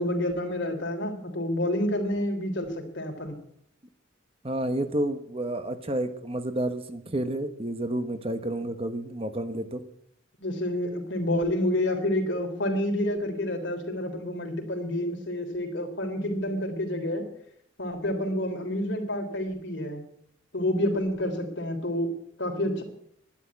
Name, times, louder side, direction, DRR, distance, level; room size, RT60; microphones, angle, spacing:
voice 1, 0.0-3.4 10.4-17.3 17.8-20.0 20.5-22.8, left 1 dB, 60° left, 4 dB, 3.5 m, -29 dB
voice 2, 4.4-9.8, right 1 dB, 30° right, 9 dB, 1.1 m, -30 dB
11.5 x 11.0 x 9.6 m, 0.69 s
head